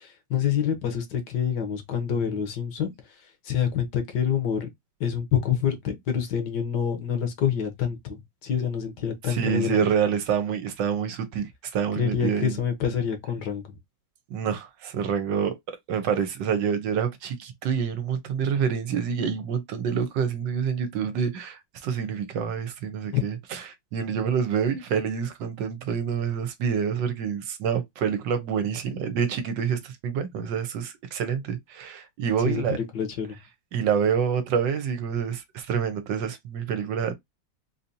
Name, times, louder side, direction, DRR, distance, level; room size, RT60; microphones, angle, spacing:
voice 1, 0.0-2.9 3.4-4.7 5.0-9.8 11.9-13.8 23.1-23.2 32.4-33.4, left 8 dB, 65° left, 1.4 m, -27 dB
voice 2, 9.3-12.6 14.3-15.6 15.9-23.6 23.9-32.8 33.7-37.1, right 7 dB, 75° right, 1.4 m, -27 dB
4.0 x 2.7 x 2.6 m
omnidirectional pair, 2.1 m